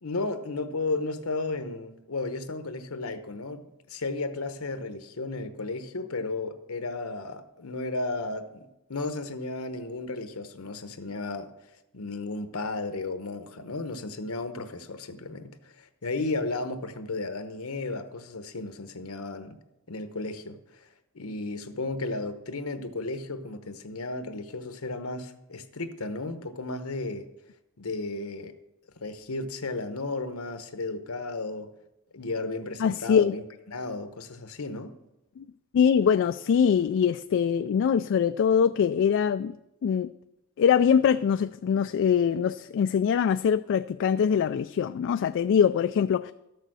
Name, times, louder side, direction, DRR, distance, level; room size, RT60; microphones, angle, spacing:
voice 1, 0.0-11.5 11.9-19.6 19.9-20.9 21.1-27.3 27.8-28.5 29.0-31.7 32.1-35.0, left 3 dB, 80° left, 1.0 m, -34 dB
voice 2, 32.8-33.3 35.4-35.5 35.7-39.6 39.8-40.1 40.6-46.3, left 7 dB, 60° left, 0.3 m, -23 dB
13.0 x 6.7 x 6.2 m
head